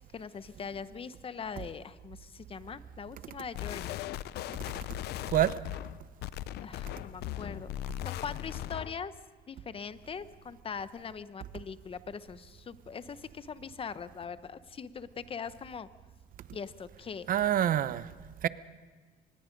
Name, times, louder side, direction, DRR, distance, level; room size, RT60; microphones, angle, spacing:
voice 1, 0.1-4.1 6.6-7.7 8.0-9.1 9.5-15.9 16.5-17.3, left 6 dB, 35° left, 0.9 m, -41 dB
sound 1, 3.6-9.0, left 13 dB, 75° left, 0.5 m, -38 dB
voice 2, 5.3-5.6 17.3-18.1 18.4-18.5, right 11 dB, 55° right, 0.8 m, -26 dB
24.5 x 20.0 x 5.3 m
cardioid pair, 110°, 17 cm